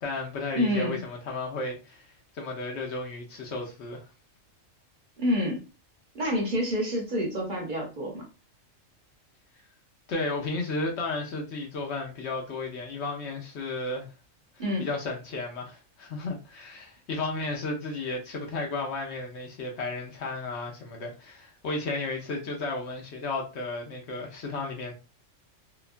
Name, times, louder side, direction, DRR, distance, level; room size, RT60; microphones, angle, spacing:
voice 1, 0.0-4.0 10.1-14.1 14.8-24.9, left 3 dB, 65° left, 0.9 m, -33 dB
voice 2, 0.5-1.0 5.2-5.6 6.1-8.2 14.6-14.9, equal, 45° right, 0.9 m, -28 dB
2.9 x 2.2 x 2.5 m
omnidirectional pair, 1.3 m